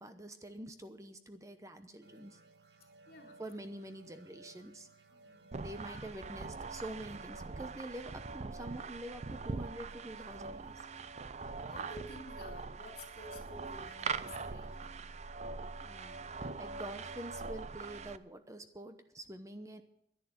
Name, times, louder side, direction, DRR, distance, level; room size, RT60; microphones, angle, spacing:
voice 1, 0.0-2.4 3.2-4.9 5.5-10.9 14.4-14.5 15.8-19.8, right 1 dB, 20° right, 9 dB, 0.8 m, -47 dB
sound 1, 2.0-9.3, right 3 dB, 70° right, 1.1 m, -61 dB
voice 2, 3.1-3.4 5.1-5.4 5.9-6.1 11.4-14.7, left 1 dB, 60° left, 3 dB, 3.2 m, -51 dB
sound 2, 5.5-18.2, right 4 dB, 40° right, 0.5 m, -42 dB
11.0 x 10.5 x 8.2 m, 0.74 s
head